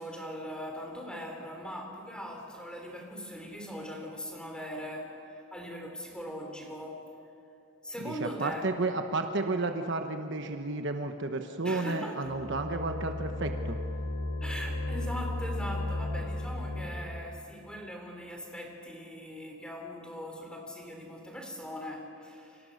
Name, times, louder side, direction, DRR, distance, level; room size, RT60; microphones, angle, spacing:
voice 1, 0.0-7.1 7.8-8.6 11.6-12.3 14.4-22.7, equal, 5° left, 2 dB, 3.4 m, -40 dB
voice 2, 8.0-13.8, right 3 dB, 55° right, 5 dB, 1.2 m, -32 dB
sound 1, 12.2-17.4, left 2 dB, 75° left, 5.0 m, -35 dB
29.5 x 25.0 x 6.6 m, 2.7 s
head